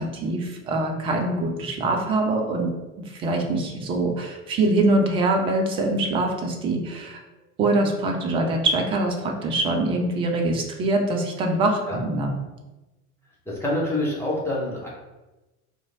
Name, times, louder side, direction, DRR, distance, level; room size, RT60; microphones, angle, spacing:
voice 1, 0.0-2.7 3.0-7.2 7.6-12.3, right 2 dB, 15° right, 2 dB, 0.3 m, -24 dB
voice 2, 13.5-14.9, left 1 dB, 5° left, -6 dB, 0.8 m, -26 dB
3.0 x 2.5 x 3.9 m, 1.1 s
figure-of-eight pair, 75°, 43 cm